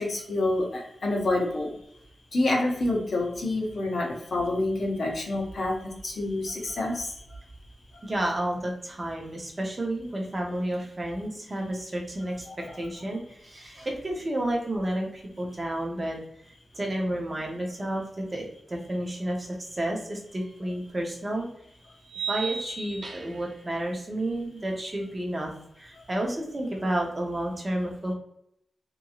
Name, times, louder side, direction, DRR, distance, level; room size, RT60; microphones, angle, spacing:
voice 1, 0.0-1.7 2.3-7.1 12.5-12.8, left 2 dB, 65° left, 0 dB, 0.8 m, -28 dB
voice 2, 8.0-12.5 12.8-16.2 16.7-21.5 22.2-25.5 25.8-28.1, right 1 dB, 30° right, 0 dB, 0.7 m, -31 dB
sound 1, 20.4-20.5 22.1-23.5, right 6 dB, 75° right, 0.7 m, -34 dB
2.9 x 2.6 x 2.3 m, 0.74 s
wide cardioid pair, 120°, 0 cm